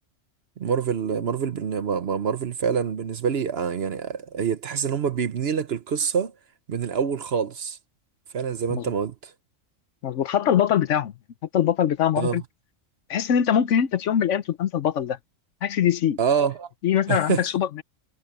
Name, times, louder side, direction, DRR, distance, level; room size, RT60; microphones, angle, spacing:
voice 1, 0.6-6.3 6.7-7.8 8.3-9.3 12.2-12.4 16.2-16.7 17.1-17.5, right 7 dB, 55° right, 1.0 m, -26 dB
voice 2, 10.0-11.1 11.5-12.4 13.1-15.2 15.6-16.2 16.8-17.8, left 9 dB, 70° left, 1.1 m, -22 dB
omnidirectional pair, 1.4 m